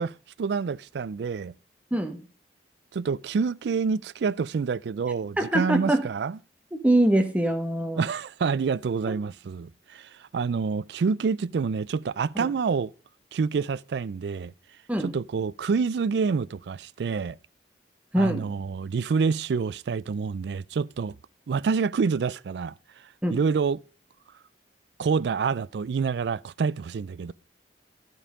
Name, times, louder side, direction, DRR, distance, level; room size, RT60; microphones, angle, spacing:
voice 1, 0.0-1.5 2.9-6.4 8.0-12.9 13.3-14.5 15.0-17.4 18.1-21.1 21.5-22.7 23.3-23.8 25.0-27.3, right 5 dB, 70° right, 0.4 m, -27 dB
voice 2, 5.4-6.1 6.7-8.0 9.1-9.2 12.4-12.5 14.9-15.2 18.1-18.5 23.2-23.4, right 1 dB, 10° right, 0.9 m, -24 dB
12.5 x 5.4 x 4.9 m
head